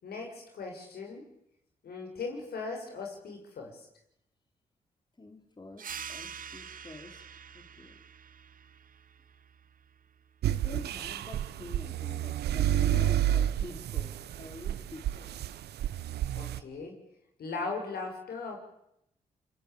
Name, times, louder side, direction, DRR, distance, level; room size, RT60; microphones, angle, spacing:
voice 1, 0.0-1.3 1.8-3.9 16.3-17.0 17.4-18.6, left 4 dB, 70° left, 3 dB, 6.7 m, -38 dB
voice 2, 5.2-7.2 7.5-8.0 10.4-15.3, left 2 dB, 25° left, 4 dB, 4.1 m, -47 dB
sound 1, 5.8-10.9, right 7 dB, 55° right, 1.1 m, -46 dB
sound 2, 10.4-16.6, right 12 dB, 80° right, 1.0 m, -30 dB
25.5 x 24.0 x 8.7 m, 0.79 s
supercardioid pair, 45°, 17 cm